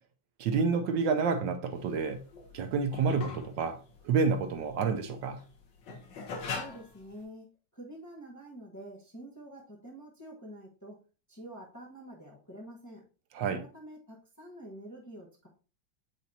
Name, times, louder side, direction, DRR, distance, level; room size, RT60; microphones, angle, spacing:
voice 1, 0.4-2.2 2.5-3.8 4.0-5.4 13.3-13.6, right 5 dB, 75° right, 1.3 m, -29 dB
sound 1, 1.7-7.2, left 4 dB, 75° left, 1.8 m, -41 dB
voice 2, 6.5-7.5 7.7-11.0 11.3-13.0 13.5-15.5, right 1 dB, 10° left, 0.9 m, -47 dB
8.3 x 4.1 x 2.8 m
omnidirectional pair, 2.1 m